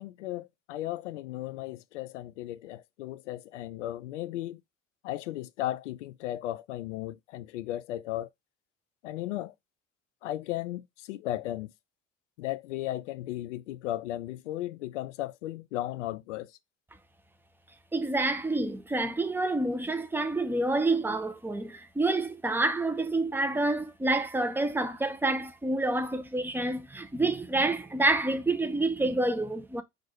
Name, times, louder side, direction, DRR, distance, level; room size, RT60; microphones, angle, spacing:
voice 1, 0.0-4.6 5.0-8.3 9.0-9.5 10.2-11.7 12.4-16.5, left 14 dB, 70° left, 0.5 m, -35 dB
voice 2, 17.9-29.8, right 2 dB, 5° right, 0.7 m, -28 dB
4.5 x 2.6 x 4.4 m
figure-of-eight pair, 60°, 37 cm